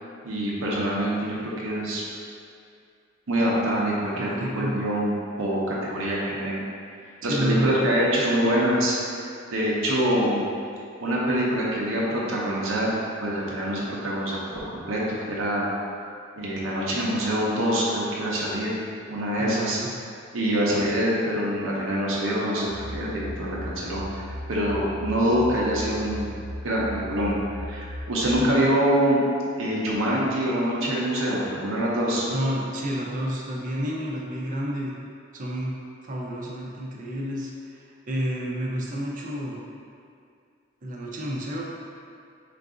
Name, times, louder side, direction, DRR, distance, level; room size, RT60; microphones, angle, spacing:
voice 1, 0.2-2.0 3.3-4.3 4.5-6.6 7.2-9.2 9.5-10.5 11.0-15.0 15.3-15.7 16.4-18.7 19.1-19.8 20.3-26.3 26.6-27.4 27.7-29.2 29.6-32.2, equal, 80° right, -5 dB, 0.7 m, -25 dB
voice 2, 4.2-4.7 7.2-8.4 19.4-19.9 28.3-28.6 32.3-34.9 35.3-35.8 36.0-39.6 40.8-41.6, equal, 40° right, -3 dB, 0.6 m, -30 dB
sound 1, 22.6-28.3, left 1 dB, 35° left, 0.7 m, -37 dB
3.8 x 2.5 x 3.7 m, 2.4 s
head